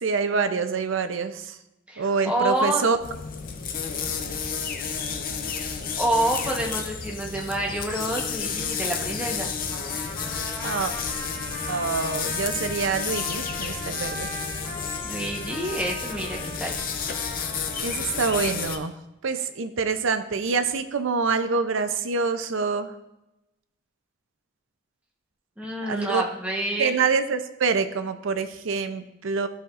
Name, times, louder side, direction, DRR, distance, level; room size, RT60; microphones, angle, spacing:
voice 1, 0.0-1.6 2.0-3.0 10.6-10.9 11.7-14.3 17.8-18.9 19.2-22.9 25.8-26.2 26.8-29.5, right 5 dB, 80° right, 9 dB, 0.6 m, -26 dB
voice 2, 1.9-2.8 5.6-9.5 15.0-16.8 25.6-27.0, right 1 dB, 5° right, -2 dB, 1.0 m, -28 dB
sound 1, 3.0-18.8, left 6 dB, 45° left, 0.6 m, -31 dB
Trumpet, 9.7-18.7, equal, 10° left, 3.0 m, -39 dB
12.5 x 5.6 x 2.5 m, 0.95 s
head